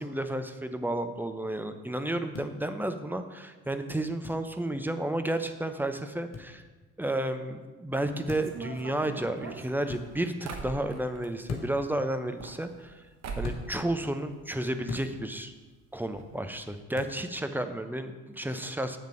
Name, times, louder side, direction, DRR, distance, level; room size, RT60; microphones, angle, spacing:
voice 1, 0.0-6.6 7.0-13.0 13.4-15.5 15.9-19.0, right 1 dB, 5° right, 8 dB, 0.7 m, -32 dB
sound 1, 2.3-2.5 4.2-4.4 6.3-6.5 8.3-8.6 9.8-10.0 11.5-11.9 13.4-13.6 14.9-15.1 16.9-17.2, left 5 dB, 45° left, 1.5 m, -38 dB
sound 2, 8.4-11.3 12.2-13.0 13.2-13.7 14.0-14.8 15.1-15.2 15.4-15.5 16.1-16.3 16.5-16.7, right 4 dB, 45° right, 1.2 m, -41 dB
8.1 x 6.6 x 5.0 m, 1.3 s
figure-of-eight pair, 50°, 36 cm